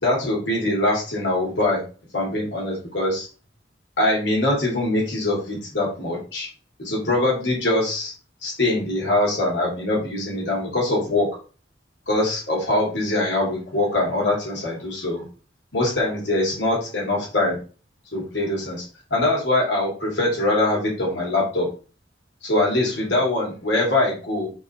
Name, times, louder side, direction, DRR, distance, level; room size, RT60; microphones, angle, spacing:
voice 1, 0.0-1.8 2.1-3.3 4.0-6.5 6.8-8.1 8.4-11.3 12.1-15.2 15.7-17.6 18.1-18.8 19.1-21.7 22.4-24.5, left 2 dB, 65° left, -3 dB, 3.0 m, -23 dB
5.3 x 4.1 x 4.3 m, 0.37 s
head